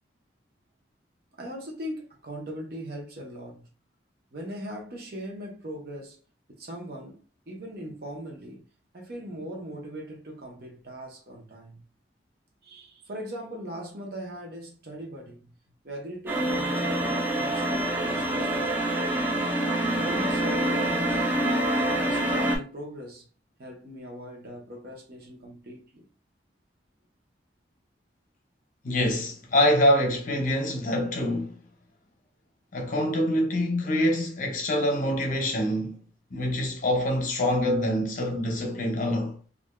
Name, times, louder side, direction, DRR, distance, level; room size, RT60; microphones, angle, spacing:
voice 1, 1.4-3.7 4.3-6.2 6.5-8.7 8.9-11.8 12.6-15.5 15.8-18.7 19.8-21.3 21.9-23.3 23.6-26.1, equal, 55° right, 0.8 m, -40 dB
sound 1, 16.3-22.6, right 1 dB, 10° right, 0.4 m, -26 dB
voice 2, 28.8-31.6 32.7-36.0 36.3-39.4, left 1 dB, 45° left, 0.7 m, -25 dB
3.2 x 2.5 x 2.2 m
head